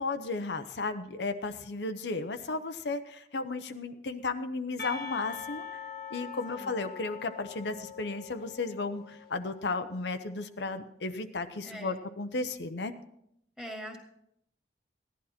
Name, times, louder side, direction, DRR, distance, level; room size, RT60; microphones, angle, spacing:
voice 1, 0.0-5.7 6.1-12.9, left 3 dB, 80° left, 8 dB, 0.8 m, -34 dB
Percussion, 4.8-9.6, left 7 dB, 60° left, 1.5 m, -43 dB
voice 2, 6.5-6.8 11.6-12.0 13.6-14.0, equal, 5° right, 1 dB, 2.0 m, -42 dB
16.0 x 11.0 x 4.3 m, 0.75 s
head